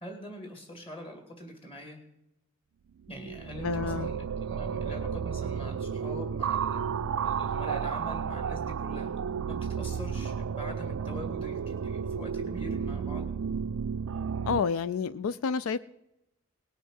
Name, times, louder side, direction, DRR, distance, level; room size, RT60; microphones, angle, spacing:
voice 1, 0.0-2.0 3.1-6.8 7.2-9.1 9.5-13.3, equal, 30° left, 4 dB, 2.4 m, -43 dB
sound 1, 3.0-14.6, right 7 dB, 75° right, 0.4 m, -32 dB
voice 2, 3.6-4.1 14.4-15.8, left 6 dB, 90° left, 16 dB, 0.4 m, -29 dB
19.0 x 6.5 x 6.3 m, 0.87 s
head